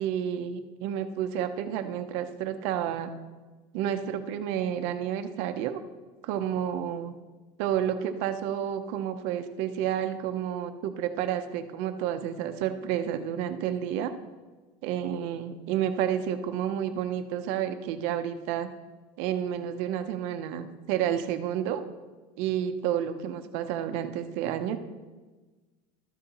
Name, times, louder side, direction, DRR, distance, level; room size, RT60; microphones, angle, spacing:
voice 1, 0.0-3.1 3.7-5.8 6.2-7.1 7.6-14.1 14.8-18.7 19.2-21.8 22.4-24.8, right 10 dB, 50° right, 9 dB, 0.6 m, -30 dB
12.5 x 8.4 x 2.9 m, 1.3 s
cardioid pair, 175°, 15 cm